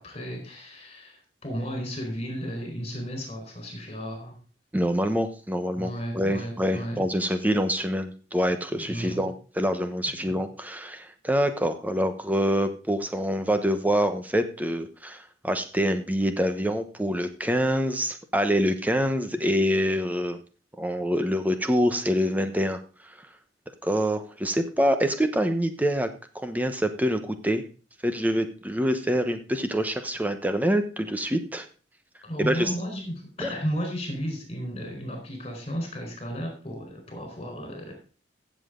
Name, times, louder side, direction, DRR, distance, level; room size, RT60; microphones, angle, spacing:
voice 1, 0.0-4.4 5.7-7.4 8.8-9.3 10.1-10.4 32.2-37.9, equal, 35° left, 3 dB, 4.4 m, -34 dB
voice 2, 4.7-20.4 20.8-22.8 23.8-26.1 26.3-27.6 28.0-31.7 32.4-32.7 33.4-33.5, equal, 10° right, 8 dB, 1.0 m, -26 dB
15.0 x 7.4 x 3.8 m, 0.36 s
head